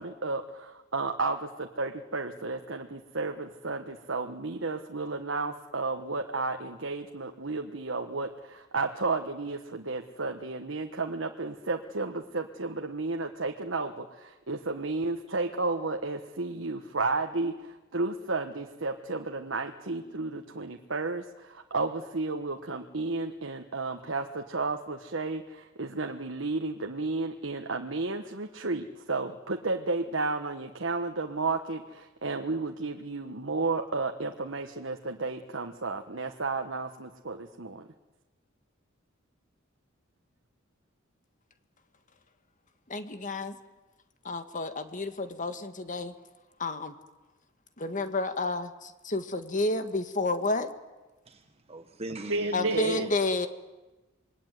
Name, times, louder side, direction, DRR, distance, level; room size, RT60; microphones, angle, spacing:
voice 1, 0.0-37.9 52.3-53.1, right 3 dB, 70° right, 1.4 m, -32 dB
voice 2, 42.9-43.6 44.2-46.1 46.6-46.9 47.8-50.7 52.5-53.5, left 2 dB, 40° left, 1.8 m, -30 dB
voice 3, 51.2-53.1, right 1 dB, 30° right, 1.3 m, -41 dB
27.0 x 22.0 x 9.4 m
head